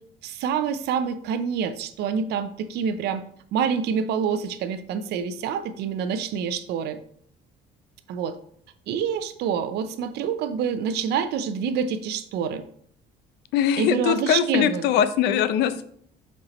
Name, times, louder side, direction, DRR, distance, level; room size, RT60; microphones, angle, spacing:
voice 1, 0.2-3.2 3.5-7.0 8.1-8.4 8.9-12.6 13.8-14.9, right 7 dB, 75° right, 11 dB, 0.6 m, -27 dB
voice 2, 13.5-15.8, left 9 dB, 80° left, 13 dB, 0.5 m, -22 dB
7.8 x 4.4 x 3.1 m, 0.63 s
cardioid pair, 110°, 17 cm